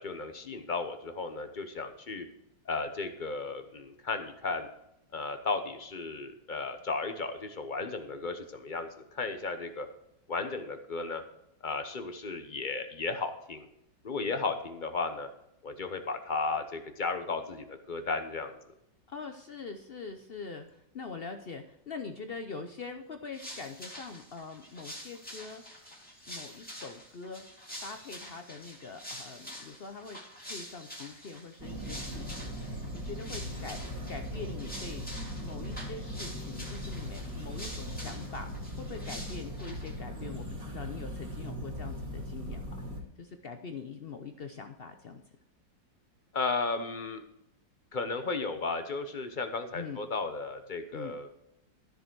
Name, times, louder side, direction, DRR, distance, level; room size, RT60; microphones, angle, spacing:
voice 1, 0.0-2.3 2.6-4.7 5.1-9.9 10.3-11.2 11.6-13.7 14.0-15.3 15.6-18.6 46.3-47.2 47.9-51.3, left 4 dB, 35° left, 8 dB, 0.8 m, -34 dB
voice 2, 19.1-25.6 26.3-27.5 27.8-30.2 30.5-33.8 34.1-35.1 35.4-42.9 43.2-45.2 49.7-50.0 50.9-51.2, left 4 dB, 75° left, 6 dB, 0.5 m, -43 dB
sound 1, 23.3-40.0, equal, 5° left, 2.2 m, -46 dB
sound 2, 31.6-43.0, equal, 50° right, 3.1 m, -39 dB
13.0 x 6.8 x 4.6 m, 0.83 s
omnidirectional pair, 2.0 m